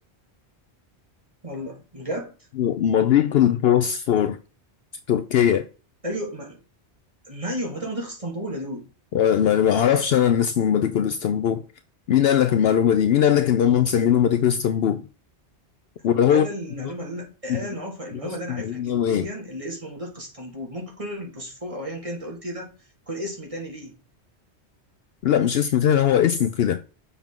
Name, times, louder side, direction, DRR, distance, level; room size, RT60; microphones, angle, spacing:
voice 1, 1.4-2.3 6.0-6.6 7.3-8.8 16.3-22.7 23.1-23.9, equal, 30° right, 2.2 m, -33 dB
voice 2, 2.6-4.4 5.1-5.7 9.1-11.6 12.1-15.0 16.0-16.5 16.8-16.9 17.5-17.6 18.5-19.3 25.2-26.8, left 9 dB, 70° left, 0.8 m, -20 dB
7.2 x 5.9 x 3.7 m
omnidirectional pair, 1.1 m